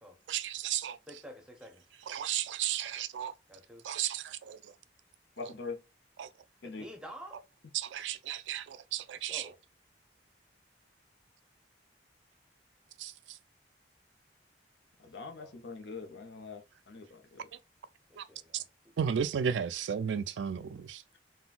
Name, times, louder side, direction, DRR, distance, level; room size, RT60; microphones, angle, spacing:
voice 1, 0.3-1.0 2.1-3.3 3.8-4.7 5.4-5.5 6.2-6.3 7.7-9.5 13.0-13.4 17.5-17.6 18.2-18.3 18.5-18.6 19.0-21.0, right 8 dB, 90° right, 0.3 m, -34 dB
voice 2, 1.1-1.8 3.5-3.9 6.6-7.4 9.3-9.6 15.0-15.6 17.0-17.1 18.1-18.7, equal, 5° right, 0.6 m, -49 dB
voice 3, 5.4-5.8 6.6-6.8 15.0-17.5, left 4 dB, 80° left, 0.7 m, -43 dB
3.7 x 2.2 x 2.4 m
head